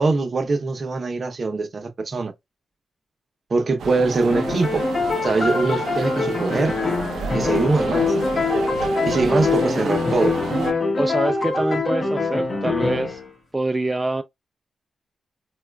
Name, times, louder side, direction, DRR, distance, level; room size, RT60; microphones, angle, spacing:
voice 1, 0.0-2.3 3.5-4.8 5.2-6.7 7.3-8.1 9.1-10.3, right 3 dB, 45° right, 0.7 m, -22 dB
sound 1, 3.8-10.7, right 5 dB, 80° right, 0.6 m, -31 dB
sound 2, 4.3-13.3, left 3 dB, 40° left, 0.9 m, -24 dB
sound 3, 6.4-10.1, left 5 dB, 90° left, 0.8 m, -38 dB
voice 2, 11.0-13.2 13.5-14.2, right 2 dB, 15° right, 0.3 m, -25 dB
4.1 x 2.3 x 2.2 m
cardioid pair, 90°, 0 cm